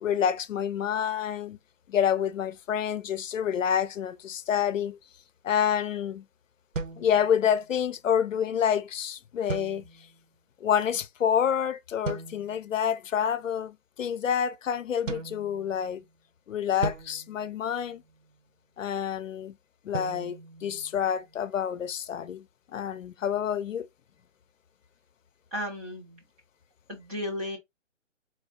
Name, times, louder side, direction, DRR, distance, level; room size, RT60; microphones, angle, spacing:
voice 1, 0.0-1.6 1.9-5.0 5.4-6.2 7.0-9.8 10.6-16.0 16.5-18.0 18.8-19.5 19.9-22.4 22.7-23.9, left 8 dB, 75° left, 0.6 m, -28 dB
sound 1, 6.7-7.8 9.5-10.3 12.0-12.7 15.1-16.1 16.8-18.3 19.9-21.4, right 4 dB, 75° right, 1.1 m, -38 dB
voice 2, 25.5-26.2 26.9-27.6, left 1 dB, 10° right, 0.7 m, -34 dB
4.2 x 2.3 x 3.9 m
hypercardioid pair, 155°, 39 cm